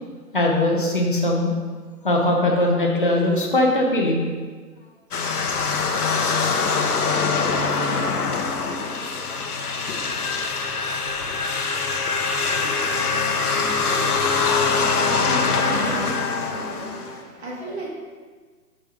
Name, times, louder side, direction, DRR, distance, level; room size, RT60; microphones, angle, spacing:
voice 1, 0.3-1.5 2.0-4.2 9.2-9.5, left 1 dB, 30° left, -1 dB, 0.7 m, -21 dB
sound 1, 5.1-17.2, left 4 dB, 65° left, 0.9 m, -23 dB
voice 2, 11.9-17.9, right 1 dB, 40° right, -3 dB, 1.6 m, -36 dB
6.4 x 5.3 x 3.6 m, 1.5 s
hypercardioid pair, 175°, 49 cm